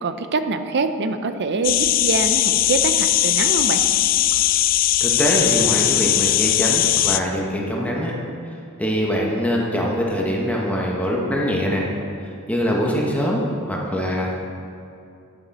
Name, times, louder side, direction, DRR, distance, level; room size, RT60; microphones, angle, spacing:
voice 1, 0.0-3.8, right 4 dB, 55° right, 9 dB, 0.6 m, -24 dB
sound 1, 1.6-7.2, left 13 dB, 40° left, 0.3 m, -19 dB
voice 2, 5.0-8.2 8.8-11.9 12.5-14.4, equal, 5° left, -3 dB, 1.0 m, -23 dB
9.3 x 9.2 x 4.2 m, 2.6 s
head